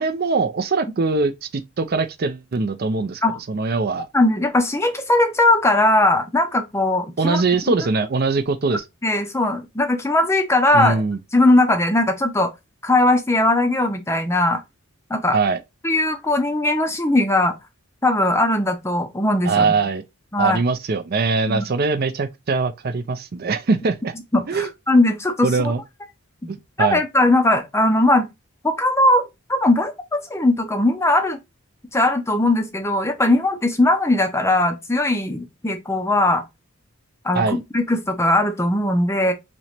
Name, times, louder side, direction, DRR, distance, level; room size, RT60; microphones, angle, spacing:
voice 1, 0.0-4.1 7.2-8.8 10.7-11.2 15.3-15.6 19.4-20.0 20.4-24.1 24.5-24.7 25.4-25.8 26.5-27.0 37.3-37.6, right 4 dB, 45° right, 0.4 m, -22 dB
voice 2, 4.1-7.4 9.0-11.0 11.3-12.5 12.8-14.6 15.1-15.4 15.8-17.5 18.0-19.7 20.3-20.6 21.5-21.7 24.3-25.7 26.4-28.3 28.6-31.4 31.9-36.4 37.2-39.3, left 2 dB, 10° left, 0.5 m, -19 dB
3.1 x 2.9 x 4.1 m
head